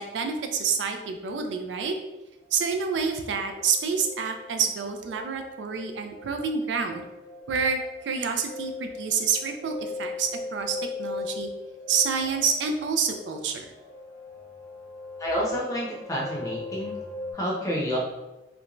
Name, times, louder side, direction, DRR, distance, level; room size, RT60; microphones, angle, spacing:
voice 1, 0.0-2.0 2.5-7.0 7.5-11.5 11.9-13.7, right 6 dB, 85° right, 6 dB, 0.3 m, -28 dB
sound 1, 2.4-3.0 3.3-17.3, left 3 dB, 85° left, 0.8 m, -39 dB
voice 2, 15.2-16.9 17.3-18.0, equal, 20° left, -4 dB, 0.6 m, -29 dB
2.5 x 2.1 x 2.9 m, 1.0 s
head